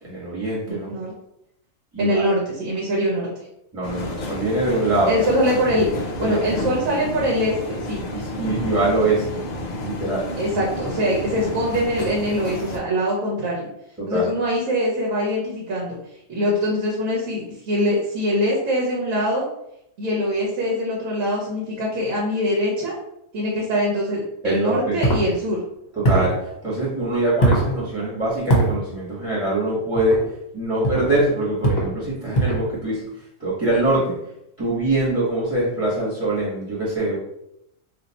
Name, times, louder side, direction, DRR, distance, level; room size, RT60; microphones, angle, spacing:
voice 1, 0.0-0.9 1.9-2.2 3.7-5.1 6.2-6.4 8.1-9.4 9.8-10.3 14.0-14.2 24.4-25.0 25.9-30.2 30.5-33.0 33.4-34.2 34.6-37.2, right 2 dB, 5° right, -8 dB, 1.2 m, -23 dB
voice 2, 0.7-1.1 2.0-3.3 5.1-8.0 10.4-13.7 14.1-16.0 16.3-19.4 20.0-23.0 23.3-25.6, equal, 80° right, -3 dB, 1.2 m, -23 dB
sound 1, 3.8-12.8, left 1 dB, 90° left, 0.3 m, -30 dB
sound 2, 25.0-25.3 26.0-26.4 27.4-27.7 28.5-28.7 30.0-30.2 30.8-31.1 31.6-31.9 32.3-32.7, right 1 dB, 40° left, 0.9 m, -20 dB
2.6 x 2.5 x 4.0 m, 0.80 s
omnidirectional pair, 1.4 m